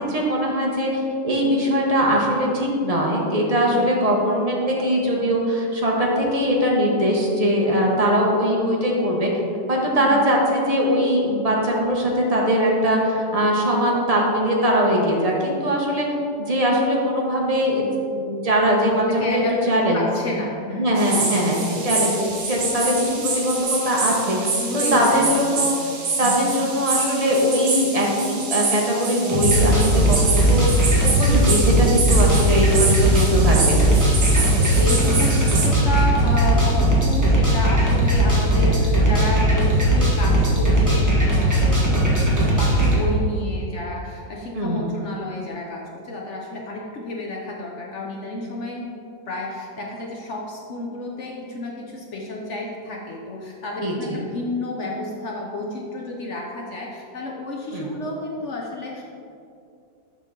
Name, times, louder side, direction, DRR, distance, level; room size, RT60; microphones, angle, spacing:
voice 1, 0.0-9.3 9.7-16.1 16.4-19.4 19.7-20.1 20.8-24.5 24.9-25.8 26.2-33.8 44.5-44.9 53.8-54.2 57.7-57.9, equal, 30° right, -2 dB, 0.8 m, -21 dB
voice 2, 3.6-4.0 7.7-8.1 10.0-10.2 19.1-20.9 21.7-21.9 24.6-25.7 26.2-26.5 31.9-33.3 34.0-48.9 49.3-59.0, left 2 dB, 55° left, -1 dB, 0.9 m, -31 dB
sound 1, 21.0-35.7, right 4 dB, 85° right, 1.8 m, -26 dB
sound 2, 29.3-43.0, right 1 dB, 10° right, 1.2 m, -18 dB
7.2 x 5.7 x 3.7 m, 2.5 s
omnidirectional pair, 1.8 m